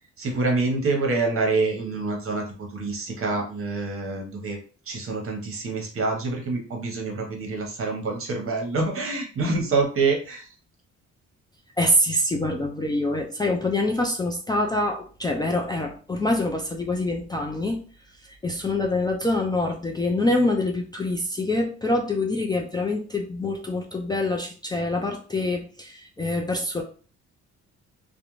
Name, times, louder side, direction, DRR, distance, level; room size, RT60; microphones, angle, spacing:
voice 1, 0.2-4.6 4.9-10.5, right 3 dB, 45° right, 1 dB, 1.0 m, -26 dB
voice 2, 11.8-17.8 18.3-26.8, left 1 dB, 15° left, 1 dB, 0.4 m, -25 dB
2.4 x 2.1 x 3.0 m, 0.39 s
cardioid pair, 90°, 30 cm